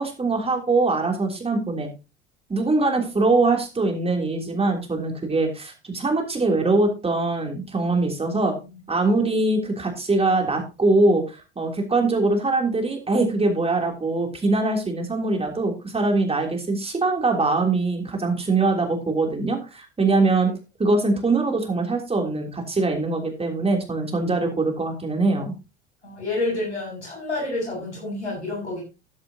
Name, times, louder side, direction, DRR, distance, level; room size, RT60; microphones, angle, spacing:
voice 1, 0.0-1.9 2.5-8.5 8.9-20.5 20.8-25.5, right 3 dB, 15° right, 3 dB, 3.3 m, -22 dB
voice 2, 8.3-8.8 26.0-28.8, left 2 dB, 90° left, -2 dB, 7.4 m, -29 dB
13.0 x 10.5 x 2.9 m, 0.29 s
figure-of-eight pair, 70°, 33 cm